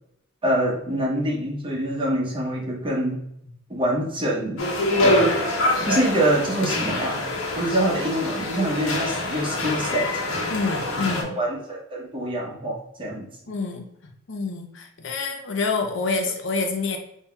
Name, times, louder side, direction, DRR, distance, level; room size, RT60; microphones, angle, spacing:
voice 1, 0.4-3.2 3.7-4.6 5.0-5.3 5.8-7.2 7.5-10.2 11.2-13.3, right 1 dB, 25° right, -2 dB, 0.8 m, -25 dB
sound 1, 4.6-11.2, left 1 dB, 90° left, 1.0 m, -25 dB
voice 2, 10.5-11.4 13.5-13.8 14.3-17.0, left 4 dB, 65° left, 3 dB, 0.6 m, -27 dB
5.3 x 2.7 x 2.3 m, 0.76 s
head